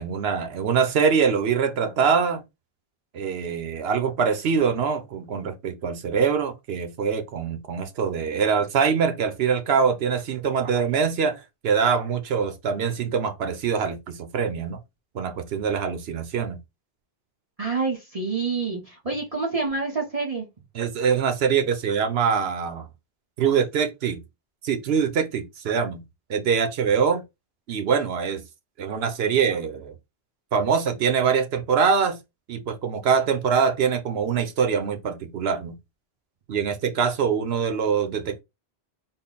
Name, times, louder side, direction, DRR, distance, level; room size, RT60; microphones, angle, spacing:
voice 1, 0.0-2.4 3.1-14.8 15.1-16.6 20.7-22.9 23.4-24.2 24.6-26.0 26.3-27.2 27.7-28.4 28.8-29.9 30.5-32.2 32.5-35.8 36.5-38.4, right 6 dB, 80° right, 0.9 m, -24 dB
voice 2, 17.6-20.5, right 4 dB, 35° right, 0.9 m, -27 dB
3.7 x 2.0 x 3.8 m
omnidirectional pair, 1.0 m